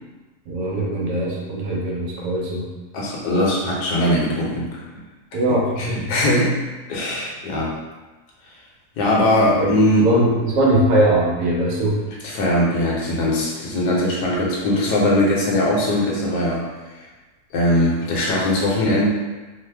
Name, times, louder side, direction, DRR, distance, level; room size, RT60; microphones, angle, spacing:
voice 1, 0.5-2.7 5.3-6.0 9.5-12.0, right 1 dB, 75° right, -3 dB, 1.2 m, -21 dB
voice 2, 2.9-4.7 5.8-7.7 9.0-10.1 12.1-16.7 16.9-17.1 17.5-19.1, left 1 dB, 75° left, -4 dB, 1.3 m, -20 dB
3.2 x 2.1 x 3.3 m, 1.2 s
omnidirectional pair, 1.7 m